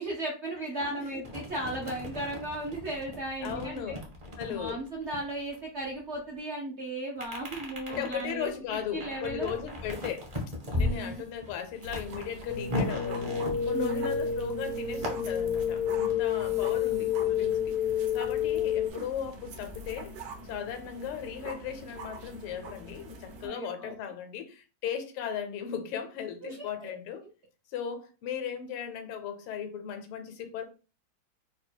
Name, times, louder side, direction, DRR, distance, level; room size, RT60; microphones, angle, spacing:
voice 1, 0.0-4.0 4.4-9.5 10.7-11.2 13.7-14.1 23.4-23.9 26.4-26.9, right 2 dB, 80° right, 0.6 m, -36 dB
sound 1, 1.2-6.1 7.2-14.2 14.9-17.3 17.5-18.8, left 1 dB, 35° right, 0.6 m, -38 dB
voice 2, 3.4-4.0 4.4-4.8 7.9-10.3 10.7-13.3 13.6-17.7 18.1-20.1 20.5-27.2 27.7-30.6, left 8 dB, 90° left, 1.6 m, -37 dB
sound 2, 11.8-23.5, right 2 dB, 60° right, 1.0 m, -44 dB
sound 3, 12.5-18.9, left 8 dB, 70° left, 0.9 m, -29 dB
3.8 x 2.3 x 4.4 m
omnidirectional pair, 2.4 m